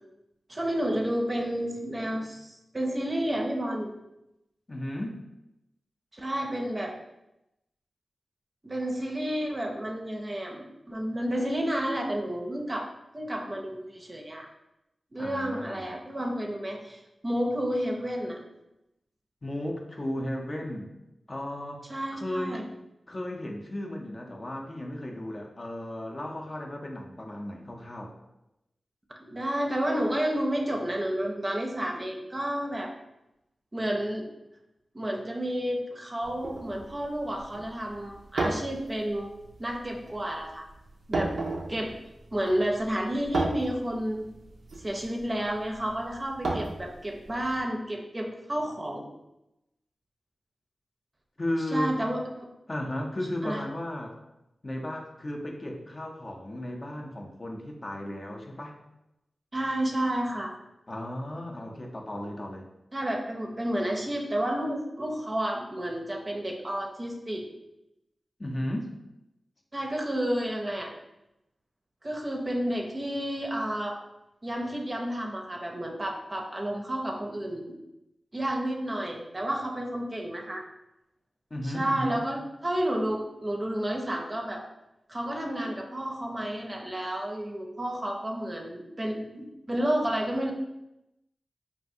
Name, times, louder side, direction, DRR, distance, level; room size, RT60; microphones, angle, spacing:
voice 1, 0.5-3.9 6.1-6.9 8.6-12.9 13.1-14.5 15.1-18.4 21.9-22.6 29.3-32.9 33.7-34.3 34.9-39.3 39.6-40.6 41.1-41.3 41.7-41.9 42.3-44.2 44.8-49.1 51.7-52.5 53.4-53.6 59.5-60.5 62.9-67.4 69.7-70.9 72.0-74.0 74.4-77.7 78.3-80.6 81.6-84.6 85.1-90.5, right 1 dB, 35° right, 1 dB, 0.5 m, -31 dB
voice 2, 4.7-5.2 15.2-15.9 19.4-20.9 21.3-22.6 23.1-28.1 51.4-52.0 52.7-54.2 54.6-58.8 60.9-62.7 68.4-68.9 81.5-82.2, left 1 dB, 40° left, 1 dB, 0.5 m, -35 dB
sound 1, 36.2-47.6, right 2 dB, 85° right, 0.4 m, -35 dB
3.3 x 2.3 x 2.6 m, 0.90 s
cardioid pair, 55°, 0 cm